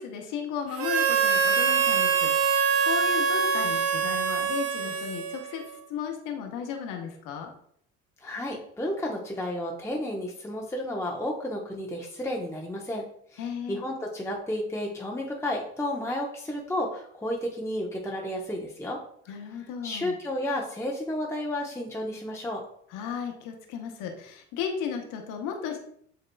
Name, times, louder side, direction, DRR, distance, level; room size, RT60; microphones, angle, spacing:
voice 1, 0.0-5.6 5.9-7.5 13.4-13.8 19.3-20.2 22.9-25.8, left 7 dB, 70° left, 4 dB, 1.0 m, -35 dB
Harmonica, 0.8-5.6, right 6 dB, 45° right, 0.6 m, -24 dB
voice 2, 8.2-13.0 13.3-19.0 19.8-22.6, left 1 dB, 10° left, -1 dB, 0.9 m, -32 dB
7.6 x 2.9 x 2.3 m, 0.65 s
hypercardioid pair, 65°, 33 cm